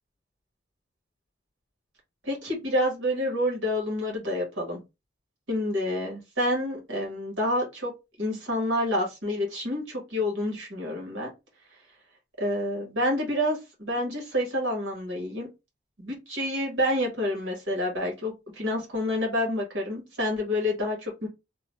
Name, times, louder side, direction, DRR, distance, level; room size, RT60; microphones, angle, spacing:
voice 1, 2.2-4.8 5.5-7.9 8.2-11.3 12.4-15.5 16.0-21.3, left 1 dB, 85° right, 0 dB, 1.5 m, -28 dB
3.0 x 2.1 x 3.1 m, 0.24 s
head